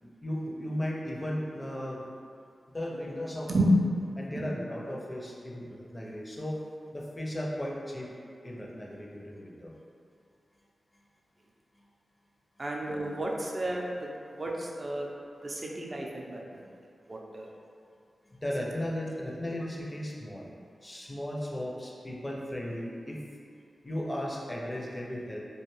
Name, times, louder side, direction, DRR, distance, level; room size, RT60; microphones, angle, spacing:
voice 1, 0.0-2.1 2.7-3.7 4.2-6.6 6.9-8.1 8.4-9.7 18.3-20.5 20.8-23.2 23.8-25.4, left 1 dB, 25° left, -2 dB, 0.4 m, -36 dB
voice 2, 12.6-15.1 15.4-16.6 17.1-17.5, right 1 dB, 45° right, -1 dB, 0.4 m, -32 dB
2.4 x 2.2 x 3.0 m, 2.3 s
cardioid pair, 50°, 0 cm